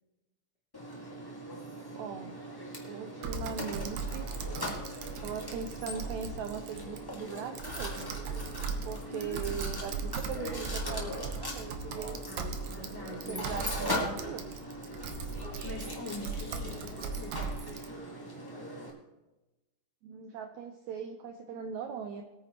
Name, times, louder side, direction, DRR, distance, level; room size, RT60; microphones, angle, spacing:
Mechanisms, 0.7-18.9, equal, 35° left, 0.3 m, -40 dB
voice 1, 1.9-2.4 2.9-4.3 5.2-8.1 8.8-12.2 13.3-14.5 20.0-22.2, right 7 dB, 85° right, 6 dB, 1.6 m, -40 dB
Typing, 3.2-17.9, right 4 dB, 70° right, 2.0 m, -39 dB
voice 2, 9.1-9.7 12.3-13.6 15.6-17.8, left 1 dB, 65° left, -3 dB, 1.0 m, -43 dB
20.0 x 9.2 x 3.0 m, 1.0 s
omnidirectional pair, 4.1 m